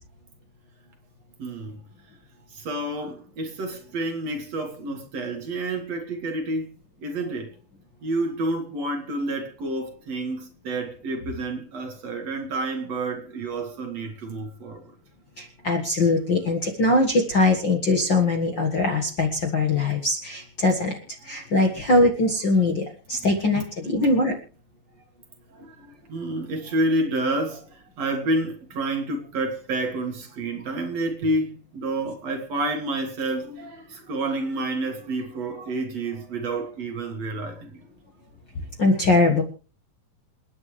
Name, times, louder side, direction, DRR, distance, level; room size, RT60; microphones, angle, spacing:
voice 1, 1.4-1.8 2.5-6.7 7.0-7.5 8.0-14.9 21.2-21.3 25.5-37.8, right 2 dB, 50° right, 2.8 m, -29 dB
voice 2, 15.4-21.0 21.2-24.4 38.8-39.4, left 2 dB, 45° left, 1.7 m, -21 dB
28.5 x 9.6 x 3.3 m
omnidirectional pair, 4.1 m